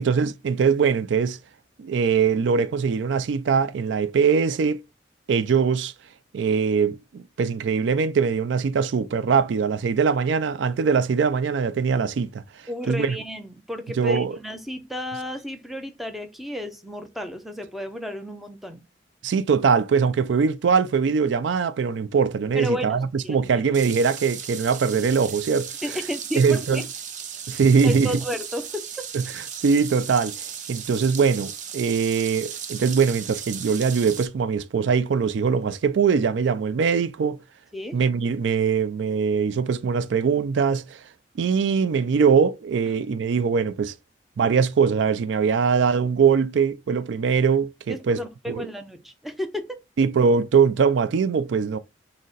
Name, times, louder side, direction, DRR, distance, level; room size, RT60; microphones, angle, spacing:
voice 1, 0.0-1.4 1.8-4.8 5.3-5.9 6.3-12.4 12.9-13.2 14.0-14.4 19.2-25.7 26.4-26.8 27.5-28.1 29.1-29.2 29.6-30.3 30.7-37.4 37.9-41.0 41.4-43.9 44.4-48.2 48.5-48.7 50.0-51.8, right 6 dB, 90° right, 0.4 m, -22 dB
voice 2, 12.7-18.8 22.5-23.4 25.8-26.9 27.8-29.1 37.7-38.0 47.9-49.8, equal, ahead, 0.6 m, -32 dB
sound 1, 23.7-34.3, right 8 dB, 45° right, 0.6 m, -36 dB
6.3 x 2.1 x 3.9 m
head